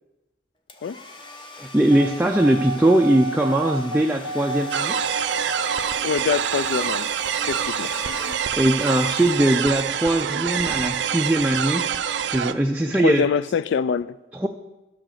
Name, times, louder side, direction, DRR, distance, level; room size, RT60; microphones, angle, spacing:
Domestic sounds home sounds, 0.7-9.9, left 3 dB, 25° left, 0.8 m, -41 dB
voice 1, 1.6-5.0 8.6-13.3 14.3-14.5, right 1 dB, 10° right, 0.4 m, -21 dB
sound 1, 1.9-5.9, right 2 dB, 55° left, 2.6 m, -31 dB
sound 2, 4.7-12.5, right 8 dB, 70° right, 0.4 m, -26 dB
voice 2, 6.0-7.1 7.5-7.9 13.0-14.2, left 6 dB, 70° left, 0.3 m, -24 dB
12.0 x 6.1 x 6.5 m
head